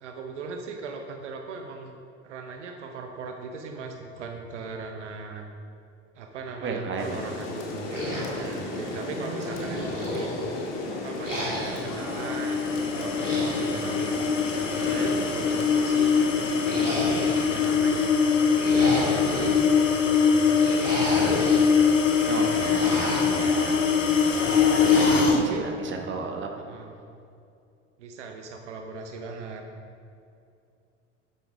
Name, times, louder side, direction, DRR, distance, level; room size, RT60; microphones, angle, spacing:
voice 1, 0.0-2.0 2.2-5.5 6.1-10.3 10.9-14.2 14.7-18.2 18.7-19.3 19.6-21.1 24.7-25.7 26.6-27.0 28.0-29.6, right 4 dB, 70° right, 4 dB, 1.0 m, -39 dB
voice 2, 6.6-7.2 9.0-9.8 22.3-23.8 24.8-26.5, right 4 dB, 30° right, 3 dB, 1.5 m, -34 dB
Rain, 7.0-17.8, left 3 dB, 55° left, 2.0 m, -35 dB
sound 1, 7.9-9.0 9.4-10.6 11.2-11.9 13.0-13.8 14.5-15.5 16.6-17.6 18.3-19.6 20.4-21.6 22.0-23.4 24.3-25.4, equal, 90° right, 2.5 m, -32 dB
sound 2, 11.5-25.4, left 6 dB, 85° left, 0.8 m, -23 dB
12.5 x 9.7 x 3.6 m, 2.6 s
figure-of-eight pair, 65°, 37 cm